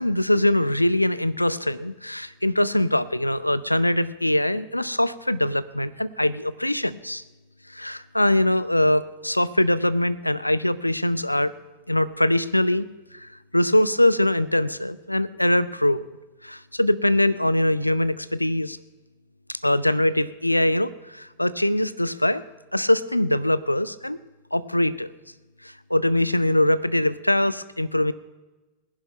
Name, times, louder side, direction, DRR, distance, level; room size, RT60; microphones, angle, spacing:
voice 1, 0.0-7.2 7.7-11.5 11.9-12.9 13.1-16.0 16.4-18.8 19.5-22.4 22.7-24.2 24.5-25.1 25.6-28.1, left 1 dB, 85° left, 18 dB, 0.5 m, -22 dB
19.0 x 10.5 x 5.7 m, 1.2 s
figure-of-eight pair, 90°, 0 cm